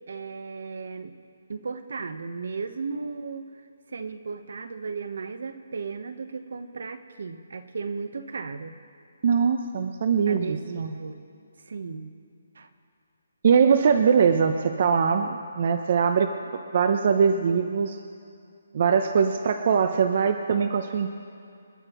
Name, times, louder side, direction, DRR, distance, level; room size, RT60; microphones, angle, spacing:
voice 1, 0.1-1.1 1.5-3.5 3.9-8.7 10.3-11.3 11.7-12.2 12.5-12.7, right 4 dB, 65° right, 10 dB, 1.1 m, -35 dB
voice 2, 9.2-10.9 13.4-18.0 18.7-21.1, right 6 dB, 40° right, 7 dB, 0.7 m, -22 dB
29.0 x 11.0 x 3.1 m, 2.4 s
hypercardioid pair, 165°, 0 cm